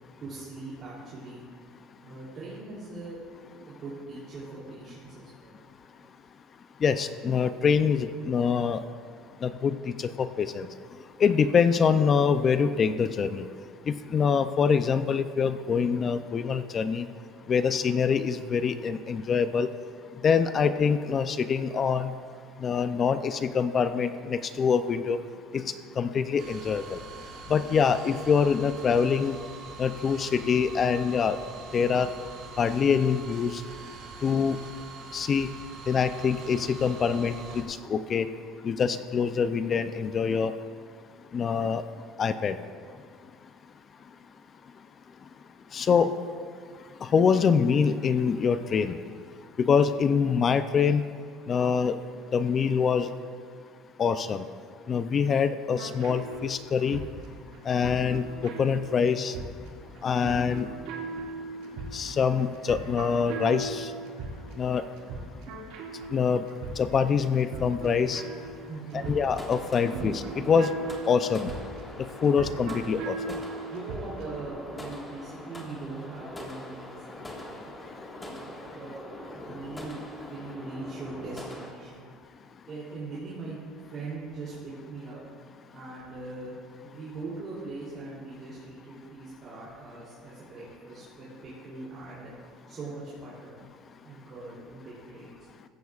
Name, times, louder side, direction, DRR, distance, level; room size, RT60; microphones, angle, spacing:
voice 1, 0.2-1.4 2.0-3.2 3.7-5.6 5.9-6.1 68.7-69.1 69.9-70.1 73.7-77.7 78.2-82.1 82.6-83.6 83.9-85.2 85.7-86.5 86.8-93.6 94.0-95.3, right 3 dB, 35° right, -7 dB, 3.1 m, -41 dB
voice 2, 6.8-8.8 9.4-10.7 11.2-13.5 13.9-17.0 17.5-19.7 20.2-22.1 22.6-25.2 25.5-25.6 26.0-27.0 27.5-29.4 29.8-31.4 31.7-32.1 32.6-33.6 34.2-34.6 35.1-35.5 35.9-38.3 38.6-40.5 41.3-41.8 42.2-42.6 45.7-46.1 47.0-49.0 49.7-51.0 51.5-51.9 52.3-53.1 54.0-54.4 54.9-57.0 57.7-59.3 60.0-60.7 61.9-63.9 64.6-64.8 66.1-66.5 66.8-68.2 68.9-70.1 70.5-70.7 71.1-71.5 72.2-73.2, left 6 dB, 30° left, 11 dB, 0.4 m, -25 dB
sound 1, 26.4-37.6, right 4 dB, 60° right, 2.4 m, -44 dB
sound 2, 55.7-74.3, right 3 dB, 80° right, 2.1 m, -39 dB
sound 3, 68.9-81.7, left 1 dB, 10° left, 1.6 m, -43 dB
15.0 x 14.5 x 2.4 m, 2.1 s
cardioid pair, 140°, 0 cm